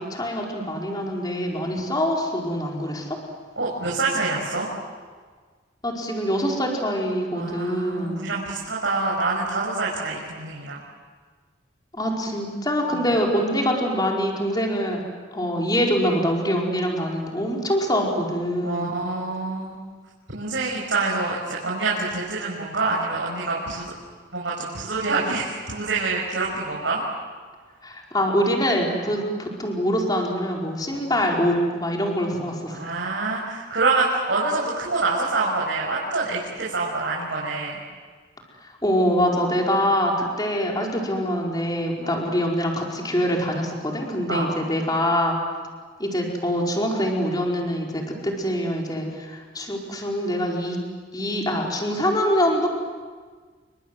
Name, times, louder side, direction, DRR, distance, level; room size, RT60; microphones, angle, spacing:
voice 1, 0.0-3.1 5.8-8.5 11.9-15.0 15.3-18.9 27.8-32.7 38.8-45.4 46.0-50.8 51.1-52.7, equal, 20° left, -1 dB, 4.8 m, -24 dB
voice 2, 3.6-4.7 7.3-10.8 12.9-13.1 18.6-19.8 20.3-23.9 24.3-27.0 30.9-31.0 32.7-37.8 42.0-42.2 44.3-44.5, right 3 dB, 70° right, -5 dB, 6.1 m, -26 dB
30.0 x 25.0 x 7.9 m, 1.5 s
head